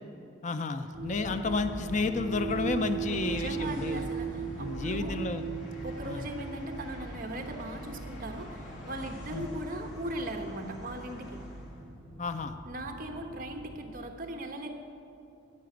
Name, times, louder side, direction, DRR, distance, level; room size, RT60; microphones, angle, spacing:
voice 1, 0.4-4.1 4.6-5.4 6.1-6.2 9.3-9.4 12.2-12.6, left 3 dB, 35° left, 9 dB, 0.5 m, -31 dB
sound 1, 0.9-13.9, right 4 dB, 65° right, 3.2 m, -39 dB
Train, 1.4-11.9, left 2 dB, 65° left, 2.6 m, -51 dB
voice 2, 3.1-5.2 5.8-11.4 12.6-14.8, right 1 dB, 45° right, 4 dB, 1.3 m, -39 dB
12.5 x 7.0 x 9.2 m, 2.6 s
head